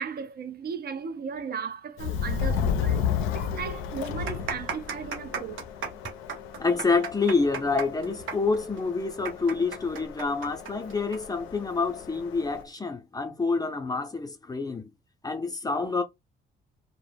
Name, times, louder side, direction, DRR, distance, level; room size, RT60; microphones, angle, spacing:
voice 1, 0.0-5.6, right 6 dB, 50° right, 0.5 m, -36 dB
Subway metro underground, 2.0-12.6, left 7 dB, 90° left, 0.4 m, -33 dB
sound 1, 3.2-3.3 3.9-11.2 11.5-11.6 12.3-12.6, right 6 dB, 75° right, 0.8 m, -35 dB
voice 2, 6.6-14.9 15.2-16.0, left 4 dB, 20° left, 0.5 m, -27 dB
2.1 x 2.1 x 3.3 m
cardioid pair, 90°, 20 cm